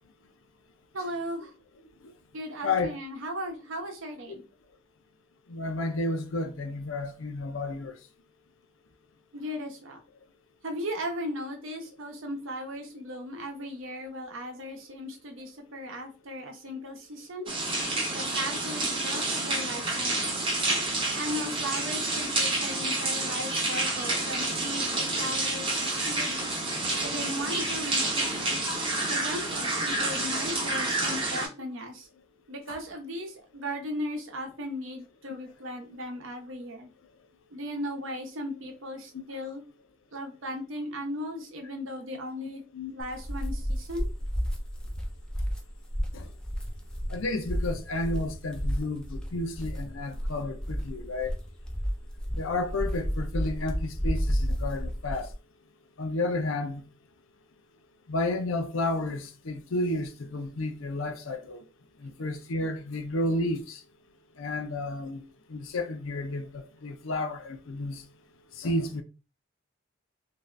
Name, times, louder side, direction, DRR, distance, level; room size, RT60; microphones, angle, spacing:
voice 1, 0.9-1.5 2.3-4.4 9.3-10.0 10.6-17.5 18.1-20.3 21.1-26.4 27.0-28.6 29.1-32.1 32.5-36.9 37.5-39.6 40.1-42.6 42.9-44.1, equal, 70° right, 0.7 m, -37 dB
voice 2, 2.6-2.9 4.3-4.4 5.5-7.9 30.4-30.5 42.7-42.9 46.1-46.3 47.1-51.3 52.4-55.3 56.0-56.9 58.1-61.6 62.0-63.8 64.4-65.2 65.5-68.0 68.5-69.0, left 2 dB, 70° left, 0.5 m, -31 dB
sound 1, 17.5-31.5, right 2 dB, 25° right, 0.7 m, -29 dB
sound 2, 43.0-55.3, equal, 5° left, 0.4 m, -32 dB
2.6 x 2.4 x 3.2 m
head